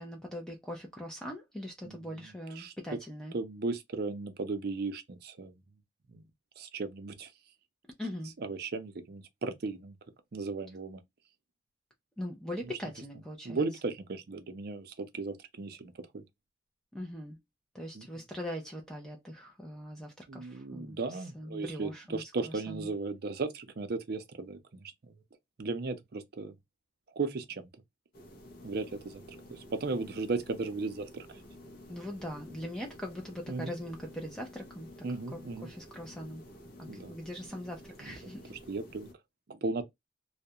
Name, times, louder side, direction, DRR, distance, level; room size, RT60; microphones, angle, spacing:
voice 1, 0.0-3.4 8.0-8.3 12.2-13.6 16.9-17.4 17.7-22.9 31.9-34.9 35.3-36.4 36.8-38.5, equal, 5° left, 0.4 m, -41 dB
voice 2, 1.8-3.0 3.3-5.5 6.1-6.2 6.6-7.3 8.4-9.9 10.3-11.0 13.4-16.2 17.9-18.1 20.3-24.9 25.6-26.5 27.2-27.7 28.6-29.2 29.5-31.3 33.5-33.8 35.0-35.7 36.9-37.1 38.0-38.1 38.5-39.1 39.5-39.8, right 3 dB, 55° right, 0.5 m, -36 dB
sound 1, 28.1-39.1, left 1 dB, 50° left, 0.6 m, -51 dB
2.3 x 2.1 x 2.7 m
head